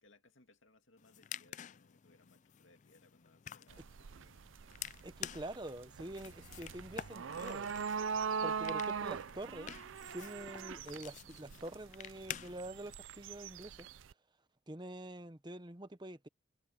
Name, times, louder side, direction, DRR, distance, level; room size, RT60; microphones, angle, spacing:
voice 1, 0.0-4.4, left 2 dB, 70° left, 2.4 m, -67 dB
sound 1, 1.0-12.9, left 10 dB, 35° left, 0.3 m, -50 dB
sound 2, 3.7-14.1, right 6 dB, 70° right, 0.5 m, -41 dB
voice 2, 5.0-7.7 8.4-9.8 10.1-13.9 14.7-16.3, right 1 dB, 20° right, 0.9 m, -46 dB
head